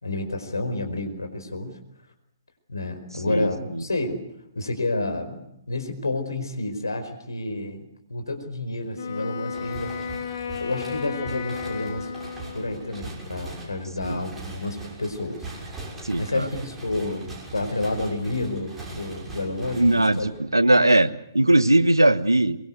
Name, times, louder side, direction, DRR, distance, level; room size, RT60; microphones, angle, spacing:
voice 1, 0.0-1.8 2.7-4.3 4.5-9.9 10.6-12.1 12.5-15.7 16.2-20.3, left 2 dB, 70° left, 7 dB, 4.9 m, -30 dB
voice 2, 3.3-3.8 14.0-14.2 16.0-16.5 19.8-22.6, right 1 dB, 85° right, 15 dB, 1.3 m, -20 dB
Wind instrument woodwind instrument, 8.9-13.1, left 6 dB, 50° left, 2.7 m, -33 dB
sound 1, 9.5-20.7, right 2 dB, 10° right, 6.4 m, -40 dB
23.5 x 22.5 x 8.1 m, 0.80 s
figure-of-eight pair, 125°, 2 cm